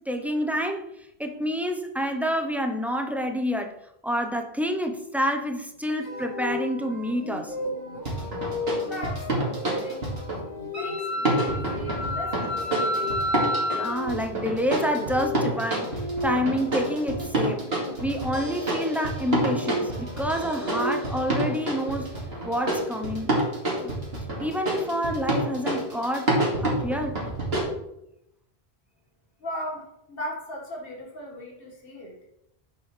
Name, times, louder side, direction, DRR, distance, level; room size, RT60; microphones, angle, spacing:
voice 1, 0.1-3.8 4.0-7.6 13.7-17.6 18.0-22.1 22.4-23.5 23.8-23.9 24.4-26.4 26.6-27.2, equal, ahead, 3 dB, 0.8 m, -28 dB
sound 1, 6.0-17.9 19.1-21.3, left 1 dB, 35° left, 3.7 m, -35 dB
sound 2, 8.1-10.5 11.3-27.6, right 1 dB, 70° right, 2.7 m, -28 dB
voice 2, 8.7-10.2 10.7-13.2 29.4-32.2, left 1 dB, 60° left, -1 dB, 2.1 m, -38 dB
Wind instrument woodwind instrument, 10.7-14.0, left 1 dB, 30° right, 2.3 m, -29 dB
10.5 x 7.1 x 3.4 m, 0.81 s
omnidirectional pair, 1.1 m